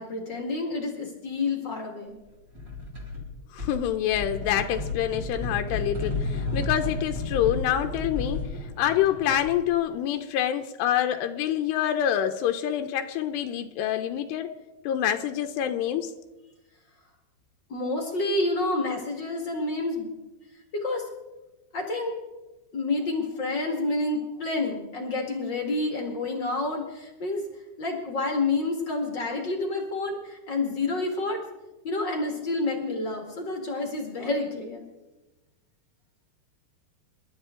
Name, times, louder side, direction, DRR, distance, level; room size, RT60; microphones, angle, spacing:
voice 1, 0.0-2.2 17.7-20.1 20.7-21.0 21.7-22.2 22.7-27.4 27.8-31.4 31.8-34.9, left 2 dB, 40° left, 1 dB, 1.8 m, -29 dB
sound 1, 2.5-3.2 3.6-9.6, left 3 dB, 20° right, 4.2 m, -32 dB
voice 2, 3.5-8.5 8.8-14.5 14.8-16.1, left 10 dB, 90° left, 6 dB, 2.9 m, -26 dB
27.5 x 12.5 x 3.8 m, 1.1 s
omnidirectional pair, 4.7 m